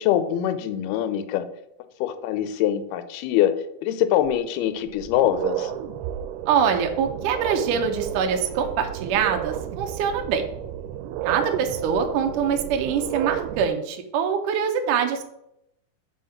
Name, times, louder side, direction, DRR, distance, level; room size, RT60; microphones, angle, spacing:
voice 1, 0.0-1.5 2.0-3.5 3.8-5.7, left 11 dB, 85° left, 10 dB, 2.6 m, -23 dB
sound 1, 4.2-4.3 4.9-13.7, right 11 dB, 90° right, 2.6 m, -32 dB
voice 2, 6.5-10.4 11.2-15.2, right 7 dB, 70° right, 4 dB, 2.0 m, -24 dB
6.4 x 4.8 x 5.8 m, 0.79 s
omnidirectional pair, 4.5 m